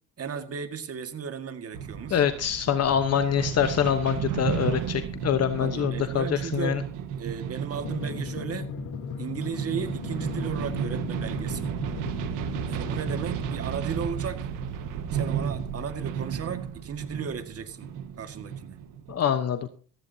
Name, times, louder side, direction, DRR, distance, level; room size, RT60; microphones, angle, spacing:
voice 1, 0.2-2.2 5.6-6.8 7.2-8.7 9.2-11.6 12.7-14.4 15.1-17.9 18.2-18.8, right 6 dB, 50° right, 9 dB, 1.9 m, -35 dB
sound 1, 1.7-19.2, right 8 dB, 85° right, 1.6 m, -33 dB
voice 2, 2.1-6.8 19.1-19.7, left 8 dB, 50° left, 9 dB, 1.1 m, -25 dB
Drum, 7.8-13.4, left 5 dB, 70° left, 2.5 m, -37 dB
15.0 x 15.0 x 2.8 m, 0.39 s
cardioid pair, 90°, 32 cm